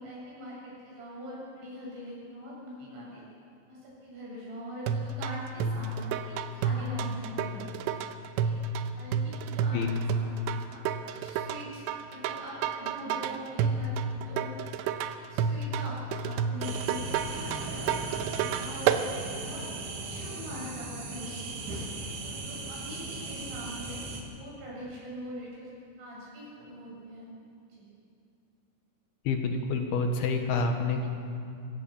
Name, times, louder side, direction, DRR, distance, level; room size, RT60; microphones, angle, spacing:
voice 1, 0.0-3.2 3.7-7.9 8.4-8.6 8.9-9.8 10.1-10.3 10.7-10.8 11.1-14.5 15.3-17.1 17.5-19.0 19.3-19.6 20.0-21.9 22.2-24.0 24.3-25.7 26.0-27.3 27.7-27.8, equal, 75° right, -6 dB, 10.0 m, -43 dB
sound 1, 4.9-19.1, right 6 dB, 90° right, 3.2 m, -30 dB
sound 2, 16.6-24.2, right 3 dB, 50° right, 3.2 m, -38 dB
voice 2, 29.2-31.1, left 3 dB, 65° left, 4 dB, 3.1 m, -28 dB
24.5 x 17.5 x 7.3 m, 2.5 s
omnidirectional pair, 5.3 m